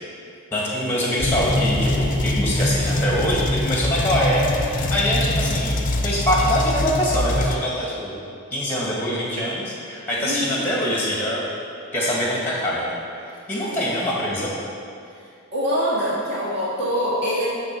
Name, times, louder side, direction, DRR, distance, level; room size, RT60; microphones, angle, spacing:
voice 1, 0.5-5.8 6.0-8.2 8.5-11.5 11.9-14.5, equal, 10° left, -5 dB, 1.8 m, -24 dB
sound 1, 1.2-7.6, left 1 dB, 35° left, 0.6 m, -23 dB
voice 2, 10.2-10.6 13.6-13.8 15.5-17.5, equal, 50° right, -7 dB, 1.9 m, -24 dB
10.0 x 4.0 x 6.7 m, 2.5 s
head